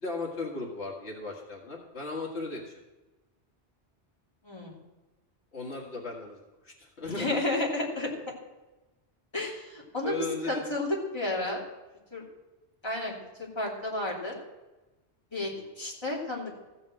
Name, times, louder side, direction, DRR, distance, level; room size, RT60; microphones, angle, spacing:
voice 1, 0.0-2.7 5.5-6.4 6.6-7.4 10.0-10.6 15.5-15.7, left 3 dB, 75° left, -1 dB, 2.1 m, -36 dB
voice 2, 4.4-4.7 7.1-8.1 9.3-10.2 10.5-11.6 12.1-12.2 12.8-13.2 13.5-14.4 15.3-15.5 15.8-16.6, left 2 dB, 25° left, -4 dB, 3.0 m, -31 dB
15.0 x 7.1 x 7.7 m, 1.1 s
omnidirectional pair, 1.1 m